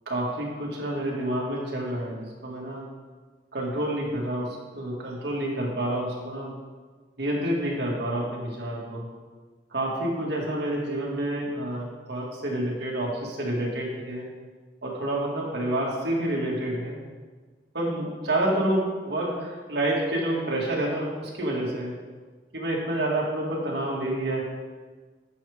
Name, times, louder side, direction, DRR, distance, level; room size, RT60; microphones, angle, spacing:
voice 1, 0.1-2.8 3.5-6.5 7.2-9.1 9.7-14.2 14.8-17.0 17.7-21.9 22.5-24.4, right 1 dB, 65° right, -3 dB, 2.1 m, -28 dB
10.5 x 6.5 x 3.6 m, 1.4 s
head